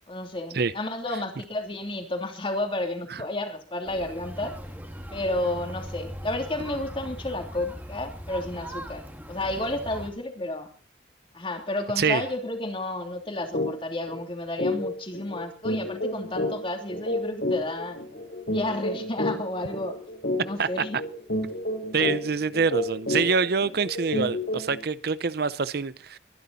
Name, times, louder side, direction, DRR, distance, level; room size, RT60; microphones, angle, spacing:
voice 1, 0.1-4.5 5.1-10.7 11.3-18.0 18.5-20.0 20.4-21.0, left 1 dB, 30° left, 3.0 m, -31 dB
sound 1, 3.8-10.1, equal, 10° right, 2.4 m, -40 dB
sound 2, 13.5-13.7 14.1-14.2 14.6-24.8, left 1 dB, 75° left, 5.3 m, -30 dB
voice 2, 21.9-26.2, right 5 dB, 60° right, 0.6 m, -25 dB
23.0 x 11.0 x 4.1 m
head